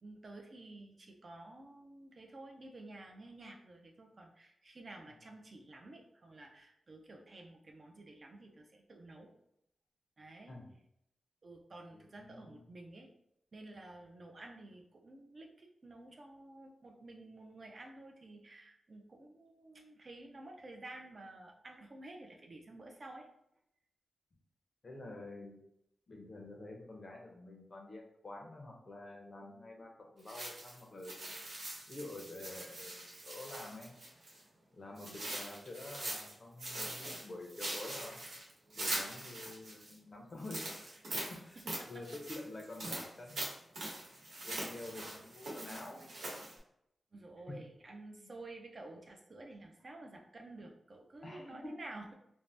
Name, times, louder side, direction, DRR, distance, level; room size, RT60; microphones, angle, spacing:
voice 1, 0.0-9.3 10.2-10.5 11.4-13.1 13.5-23.3 41.6-42.0 42.8-42.9 47.1-52.1, right 2 dB, 35° right, 2 dB, 0.4 m, -52 dB
voice 2, 11.9-12.7 24.8-25.6 26.1-31.3 31.9-34.0 34.7-38.2 38.7-40.8 41.1-41.6 41.9-43.5 44.4-46.1 47.5-47.6 48.2-48.3 51.2-51.8, left 2 dB, 35° left, 0 dB, 0.6 m, -48 dB
sound 1, 30.3-34.4 35.0-36.3 36.6-39.9 40.4-46.6, right 1 dB, 75° right, 1.0 m, -42 dB
2.6 x 2.1 x 3.2 m, 0.77 s
wide cardioid pair, 170°, 0 cm